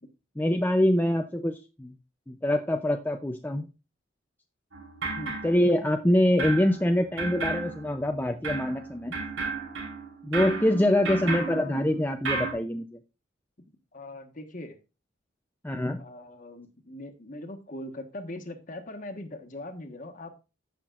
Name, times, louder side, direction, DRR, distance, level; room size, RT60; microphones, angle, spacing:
voice 1, 0.4-1.9 2.3-3.7 5.4-9.1 10.2-12.9 15.6-16.0, left 1 dB, 10° left, 4 dB, 0.5 m, -25 dB
sound 1, 4.7-6.1 6.4-12.5, right 4 dB, 90° right, 4.2 m, -34 dB
voice 2, 11.1-11.8 13.9-14.8 16.0-20.3, left 1 dB, 40° left, 6 dB, 1.3 m, -41 dB
14.5 x 5.9 x 2.4 m, 0.30 s
head